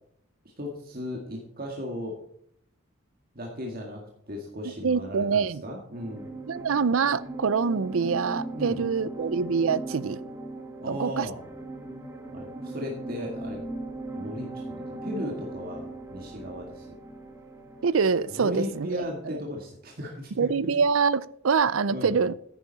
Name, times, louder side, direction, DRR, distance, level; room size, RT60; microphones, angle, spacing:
voice 1, 0.6-2.2 3.4-6.3 8.5-8.8 10.8-11.4 12.3-13.6 14.2-16.9 18.4-20.5 21.9-22.2, left 1 dB, 45° right, 0 dB, 1.8 m, -36 dB
voice 2, 4.6-5.6 6.5-10.2 10.9-11.3 17.8-19.4 20.4-22.3, right 5 dB, 85° right, 19 dB, 0.5 m, -25 dB
sound 1, 6.0-19.3, right 2 dB, 15° right, 1.6 m, -39 dB
10.0 x 9.7 x 4.1 m, 0.69 s
head